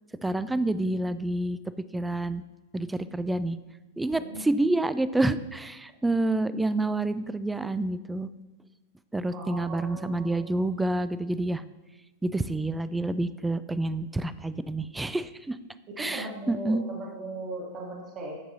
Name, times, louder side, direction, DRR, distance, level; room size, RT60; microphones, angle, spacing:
voice 1, 0.2-1.6 1.9-2.4 2.7-3.6 4.0-8.3 9.1-11.6 12.2-15.6 16.0-16.8, right 2 dB, 10° right, 14 dB, 0.3 m, -28 dB
voice 2, 9.3-10.6 15.9-18.4, right 2 dB, 35° right, -3 dB, 1.4 m, -38 dB
8.7 x 6.0 x 2.7 m, 1.1 s
hypercardioid pair, 95°, 0 cm